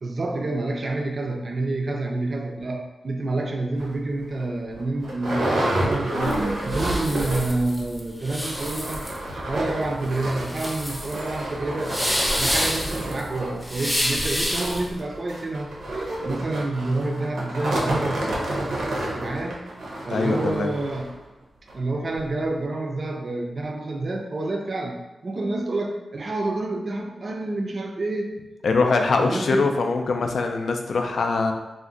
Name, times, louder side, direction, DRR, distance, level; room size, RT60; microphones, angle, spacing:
voice 1, 0.0-6.4 6.6-9.1 9.3-12.0 12.3-15.7 16.2-18.3 19.1-19.7 20.1-21.1 21.7-28.3 29.1-29.7, right 2 dB, 50° right, 2 dB, 0.4 m, -28 dB
sound 1, 3.8-3.9 4.4-4.5 4.7-7.7 7.9-8.0 8.3-21.1 21.7-21.8 22.2-22.3, right 1 dB, 85° right, 0.7 m, -29 dB
sound 2, 6.2-14.9, equal, 5° left, 0.6 m, -28 dB
voice 2, 20.1-20.7 28.6-31.5, left 3 dB, 70° left, 4 dB, 0.3 m, -22 dB
2.4 x 2.1 x 3.7 m, 0.98 s
wide cardioid pair, 85°, 0 cm